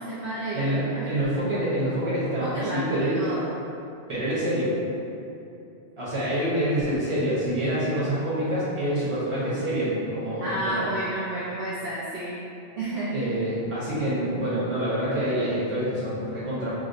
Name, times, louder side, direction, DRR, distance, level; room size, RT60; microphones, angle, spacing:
voice 1, 0.0-1.1 2.2-3.5 10.4-12.4 12.8-13.1, right 1 dB, 60° right, -8 dB, 0.7 m, -31 dB
voice 2, 0.5-3.2 4.1-4.7 6.0-10.9 13.1-16.7, right 1 dB, 30° right, -10 dB, 1.0 m, -26 dB
4.9 x 2.0 x 2.6 m, 2.8 s
omnidirectional pair, 1.2 m